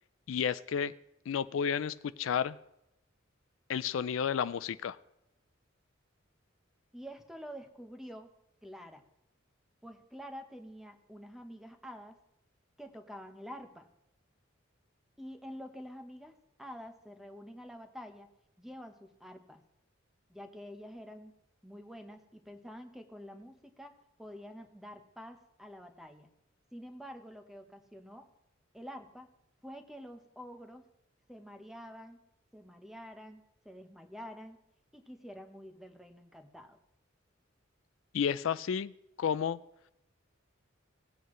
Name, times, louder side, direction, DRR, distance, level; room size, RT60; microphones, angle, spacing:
voice 1, 0.3-0.9 1.3-2.6 3.7-5.0 38.1-39.6, left 7 dB, 85° left, 15 dB, 0.4 m, -32 dB
voice 2, 6.9-8.3 8.6-9.0 9.8-12.2 12.8-13.9 15.2-18.3 18.6-19.6 20.3-21.3 21.6-26.3 26.7-28.3 28.7-29.3 29.6-30.9 31.3-32.2 32.5-34.6 34.9-36.8, equal, ahead, 6 dB, 0.9 m, -48 dB
18.0 x 7.9 x 3.2 m, 0.84 s
head